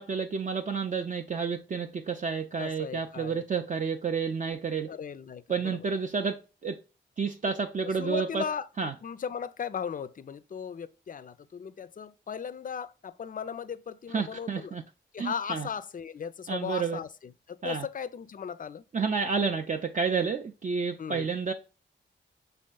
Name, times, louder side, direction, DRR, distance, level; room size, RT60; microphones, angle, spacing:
voice 1, 0.0-4.9 5.5-6.8 7.2-8.4 8.8-8.9 14.1-14.8 15.2-15.7 16.5-17.0 17.6-17.9 18.9-21.5, right 5 dB, 40° right, 0.4 m, -30 dB
voice 2, 2.6-3.4 4.9-5.8 7.8-14.8 15.1-18.8 21.0-21.3, left 7 dB, 45° left, 0.4 m, -37 dB
5.3 x 3.4 x 2.2 m
cardioid pair, 45°, 21 cm